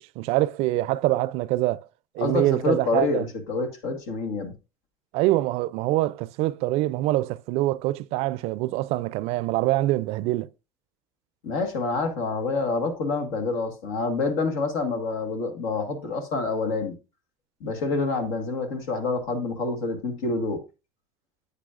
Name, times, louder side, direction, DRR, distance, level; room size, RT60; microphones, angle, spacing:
voice 1, 0.0-1.8 2.1-3.3 5.1-10.5, right 17 dB, 65° right, 0.4 m, -25 dB
voice 2, 2.2-4.5 11.4-16.9 17.6-20.6, left 3 dB, 85° left, 1.6 m, -27 dB
8.4 x 8.3 x 2.5 m
supercardioid pair, 105°, 11 cm